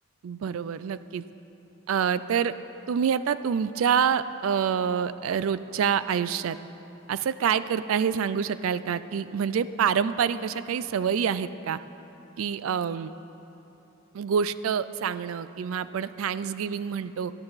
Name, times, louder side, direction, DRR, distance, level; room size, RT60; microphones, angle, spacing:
voice 1, 0.2-1.2 1.9-2.5 2.9-6.6 7.1-11.8 12.4-13.1 14.1-17.3, right 7 dB, 85° right, 15 dB, 0.4 m, -27 dB
17.5 x 12.0 x 4.0 m, 3.0 s
head